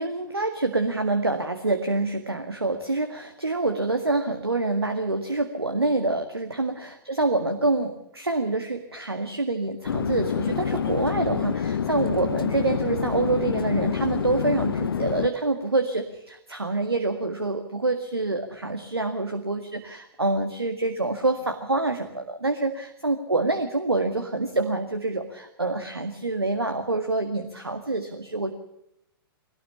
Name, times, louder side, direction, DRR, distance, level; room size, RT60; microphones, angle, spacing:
voice 1, 0.0-28.5, right 2 dB, 90° right, 6 dB, 1.9 m, -26 dB
Chatter / Fixed-wing aircraft airplane, 9.8-15.3, left 7 dB, 70° left, 1.1 m, -27 dB
21.5 x 18.0 x 7.2 m, 0.79 s
figure-of-eight pair, 110°, 13 cm